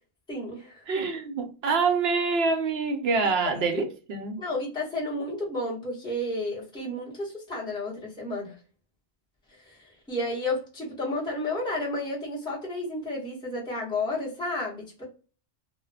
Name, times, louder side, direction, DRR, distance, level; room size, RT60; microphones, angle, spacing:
voice 1, 0.3-0.7 3.4-3.6 4.4-8.5 9.7-9.8 10.1-15.0, left 2 dB, 5° left, 0.9 m, -31 dB
voice 2, 0.9-4.4, right 4 dB, 65° right, 0.7 m, -26 dB
2.3 x 2.3 x 3.2 m
omnidirectional pair, 1.3 m